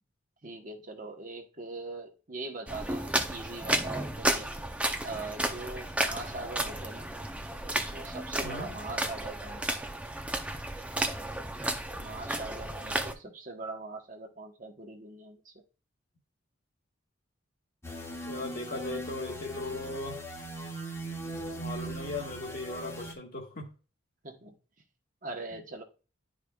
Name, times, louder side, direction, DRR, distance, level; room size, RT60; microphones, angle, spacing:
voice 1, 0.4-4.5 5.0-7.1 7.8-9.8 12.0-15.5 24.2-24.6 25.2-25.8, right 3 dB, 40° right, 1.1 m, -41 dB
sound 1, 2.7-13.1, right 1 dB, 5° right, 0.6 m, -33 dB
voice 2, 8.4-8.8 18.2-20.2 21.6-23.7, left 2 dB, 50° left, 1.6 m, -38 dB
sound 2, 17.8-23.1, right 1 dB, 15° left, 1.3 m, -39 dB
11.0 x 4.9 x 2.3 m
head